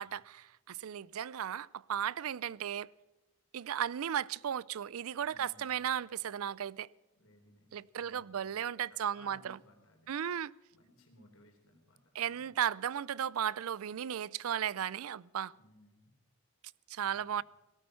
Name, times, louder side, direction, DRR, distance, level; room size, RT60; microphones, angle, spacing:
voice 1, 0.0-2.9 3.5-6.9 7.7-9.6 10.1-10.5 12.1-15.5 16.9-17.4, right 9 dB, 75° right, 0.4 m, -35 dB
voice 2, 5.2-5.8 7.1-7.7 8.0-8.6 8.9-10.1 10.7-12.6 15.5-16.1 17.1-17.4, left 1 dB, 70° left, 3.7 m, -62 dB
18.0 x 13.0 x 5.6 m
head